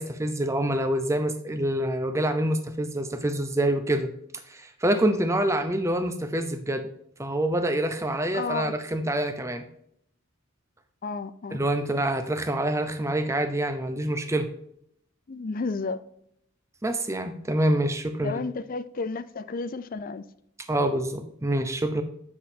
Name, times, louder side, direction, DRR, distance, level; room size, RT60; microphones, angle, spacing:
voice 1, 0.0-4.1 4.5-6.9 7.2-9.6 11.5-14.5 16.8-18.4 20.7-22.0, right 1 dB, 15° right, 0.6 m, -26 dB
voice 2, 8.3-8.8 11.0-11.6 15.3-16.0 18.2-20.2, left 4 dB, 40° left, 0.4 m, -32 dB
7.7 x 6.3 x 2.7 m
head